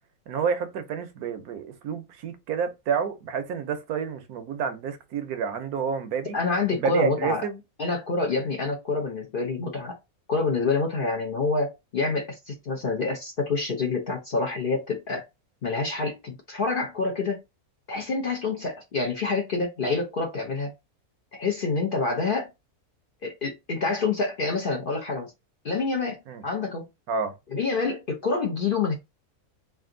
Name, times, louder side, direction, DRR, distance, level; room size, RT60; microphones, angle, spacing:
voice 1, 0.3-6.4 6.7-7.6 26.3-26.4 27.1-27.4, right 6 dB, 80° right, 1.3 m, -29 dB
voice 2, 6.3-7.5 7.8-10.0 10.3-15.2 15.6-17.4 17.9-20.7 21.3-22.5 23.2-25.3 25.6-26.9 27.5-28.9, left 4 dB, 50° left, 0.7 m, -27 dB
3.4 x 2.6 x 3.8 m
omnidirectional pair, 1.6 m